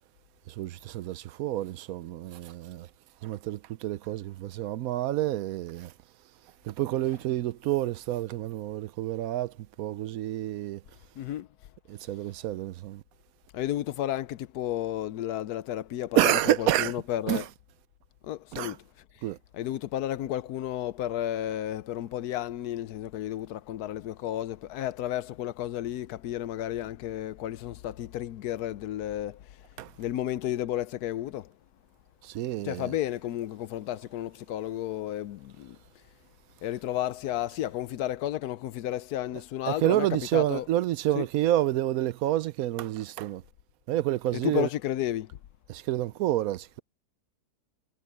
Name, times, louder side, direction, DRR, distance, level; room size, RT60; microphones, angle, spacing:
voice 1, 0.5-2.9 3.2-5.9 6.6-10.8 11.9-13.0 16.2-17.5 18.5-18.8 19.2-19.4 29.8-29.9 32.2-33.0 39.7-43.4 43.9-44.7 45.7-46.8, right 14 dB, 70° right, 0.9 m, -29 dB
voice 2, 11.2-11.5 13.5-16.3 16.6-17.4 18.2-18.8 19.5-29.4 30.0-31.5 32.6-35.8 36.6-40.1 40.3-40.6 41.2-41.3 44.4-45.3, left 12 dB, 80° left, 1.1 m, -32 dB
omnidirectional pair, 1.7 m